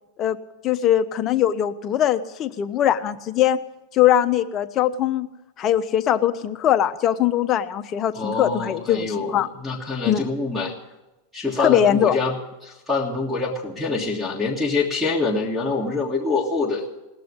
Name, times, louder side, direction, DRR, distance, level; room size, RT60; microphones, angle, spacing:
voice 1, 0.6-3.6 3.9-5.3 5.6-9.5 10.1-10.3 11.6-12.2, left 11 dB, 35° left, 9 dB, 0.8 m, -21 dB
voice 2, 8.1-10.7 11.3-12.4 12.6-16.8, left 3 dB, 5° right, -1 dB, 1.7 m, -25 dB
18.5 x 6.8 x 9.7 m, 1.0 s
supercardioid pair, 130°, 0 cm